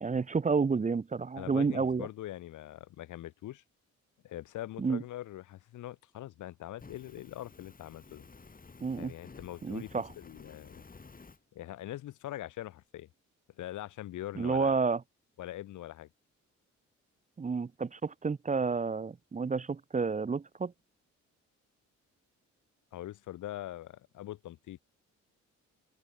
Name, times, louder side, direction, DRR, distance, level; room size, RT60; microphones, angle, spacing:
voice 1, 0.0-2.1 4.8-5.0 8.8-9.1 9.6-10.1 14.4-15.0 17.4-20.7, right 4 dB, 25° right, 0.9 m, -30 dB
voice 2, 1.4-3.6 4.2-8.3 8.9-10.8 11.5-13.1 13.6-14.7 15.4-16.1 22.9-24.8, left 14 dB, 80° left, 2.4 m, -43 dB
Fire, 6.8-11.4, left 4 dB, 30° left, 5.8 m, -53 dB
open air
cardioid pair, 90°, 30 cm